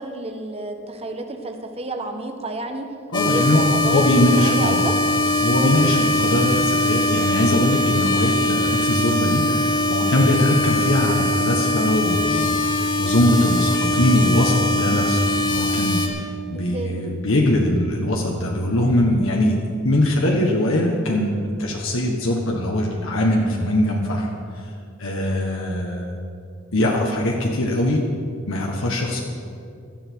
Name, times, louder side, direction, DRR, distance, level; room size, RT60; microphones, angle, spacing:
voice 1, 0.0-2.9 3.2-4.9 16.5-17.0, right 2 dB, 30° right, 5 dB, 1.2 m, -30 dB
voice 2, 3.1-3.6 3.9-4.8 5.4-19.5 19.8-24.3 25.0-26.2 26.7-28.0 28.5-29.2, left 1 dB, 65° left, -1 dB, 1.5 m, -21 dB
sound 1, 3.1-16.1, left 1 dB, 20° left, 2.0 m, -21 dB
16.5 x 13.0 x 4.7 m, 2.4 s
head